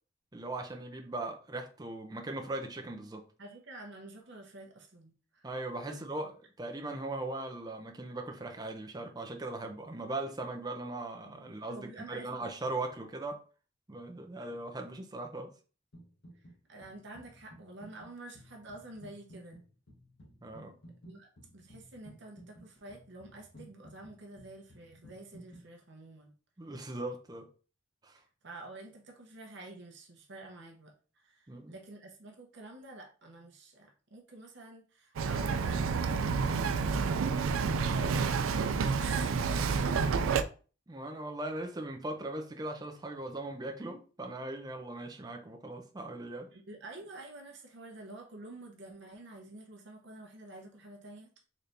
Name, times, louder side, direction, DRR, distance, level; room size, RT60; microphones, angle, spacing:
voice 1, 0.3-3.2 5.4-6.3 6.6-13.4 13.9-15.5 20.4-20.7 26.6-27.5 28.0-28.2 31.5-31.8 39.3-39.4 40.9-46.5, right 2 dB, 20° right, 3 dB, 0.5 m, -39 dB
voice 2, 3.4-5.5 5.9-6.0 11.2-12.5 16.7-19.6 21.0-21.3 21.5-26.3 28.2-37.5 37.9-40.2 46.5-51.4, right 2 dB, 60° right, 1 dB, 0.8 m, -49 dB
sound 1, 15.9-16.6 16.8-25.7, equal, 70° left, 1.4 m, -55 dB
Bird vocalization bird call bird song, 35.2-40.4, right 5 dB, 85° right, 0.4 m, -29 dB
4.1 x 3.3 x 2.6 m, 0.37 s
head